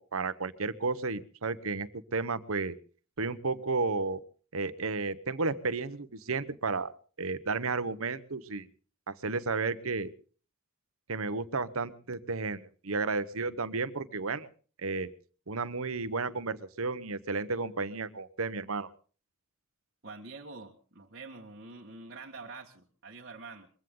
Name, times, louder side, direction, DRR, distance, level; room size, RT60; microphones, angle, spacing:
voice 1, 0.0-2.8 3.2-4.2 4.5-8.7 9.1-10.1 11.1-14.5 14.8-15.1 15.5-18.9, right 4 dB, 80° right, 13 dB, 1.1 m, -33 dB
voice 2, 20.0-23.7, right 3 dB, 50° right, -1 dB, 1.7 m, -46 dB
22.0 x 15.5 x 3.9 m, 0.40 s
head